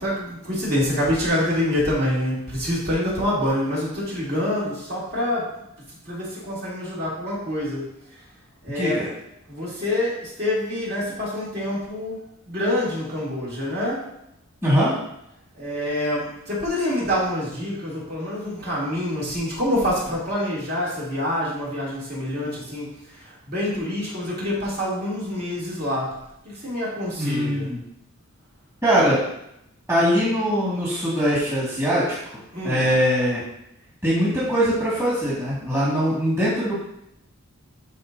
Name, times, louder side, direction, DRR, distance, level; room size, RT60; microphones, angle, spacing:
voice 1, 0.0-5.6 6.0-8.1 8.6-9.0 9.5-14.1 15.5-27.7 32.5-32.9, left 1 dB, 45° right, -7 dB, 2.6 m, -26 dB
voice 2, 8.7-9.1 14.6-14.9 27.2-27.8 28.8-29.2 29.9-33.4 34.0-36.8, equal, 15° right, -8 dB, 1.9 m, -22 dB
12.0 x 4.1 x 2.6 m, 0.78 s
head